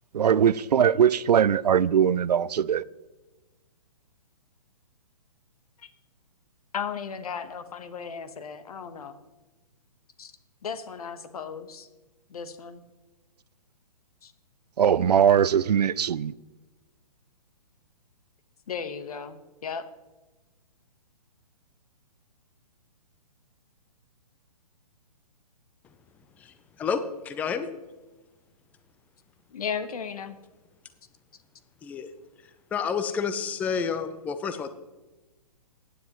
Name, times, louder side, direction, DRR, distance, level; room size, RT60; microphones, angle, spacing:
voice 1, 0.1-2.8 14.8-16.3, right 8 dB, 85° right, 0.4 m, -21 dB
voice 2, 6.7-9.2 10.2-10.3 10.6-11.9 12.3-12.8 14.2-14.3 18.7-19.8 29.5-30.4, left 6 dB, 70° left, 1.2 m, -35 dB
voice 3, 26.4-27.7 31.8-32.1 32.7-34.7, left 6 dB, 10° left, 0.4 m, -30 dB
15.0 x 9.6 x 3.0 m
hypercardioid pair, 135°, 20 cm